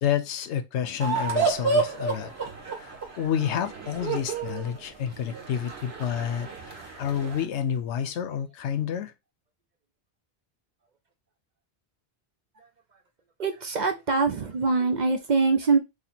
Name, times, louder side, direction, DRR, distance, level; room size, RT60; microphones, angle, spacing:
voice 1, 0.0-2.3 2.8-9.1, left 9 dB, 90° left, 0.9 m, -29 dB
sound 1, 1.0-7.4, right 4 dB, 65° right, 1.3 m, -30 dB
voice 2, 13.4-15.8, right 4 dB, 50° right, 0.6 m, -23 dB
2.9 x 2.8 x 4.1 m
omnidirectional pair, 1.1 m